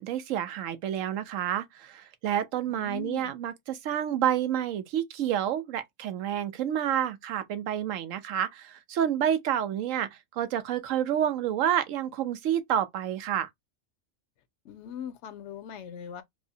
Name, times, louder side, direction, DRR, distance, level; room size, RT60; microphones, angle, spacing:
voice 1, 0.0-13.5, right 10 dB, 80° right, 1.0 m, -29 dB
voice 2, 2.7-3.3 14.6-16.2, left 9 dB, 70° left, 0.8 m, -40 dB
4.6 x 2.1 x 2.7 m
omnidirectional pair, 1.4 m